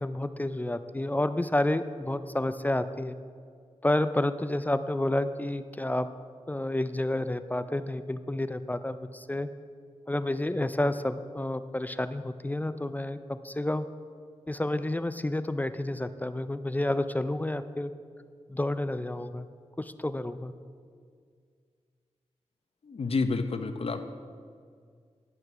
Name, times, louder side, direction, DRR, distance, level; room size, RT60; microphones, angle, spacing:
voice 1, 0.0-3.2 3.8-6.1 6.5-9.5 10.1-13.9 14.5-17.9 18.5-19.5 19.8-20.5, left 1 dB, 15° left, 12 dB, 0.4 m, -30 dB
voice 2, 22.9-24.0, left 4 dB, 55° left, 8 dB, 0.7 m, -29 dB
10.5 x 6.5 x 5.9 m, 2.1 s
wide cardioid pair, 90°, 12 cm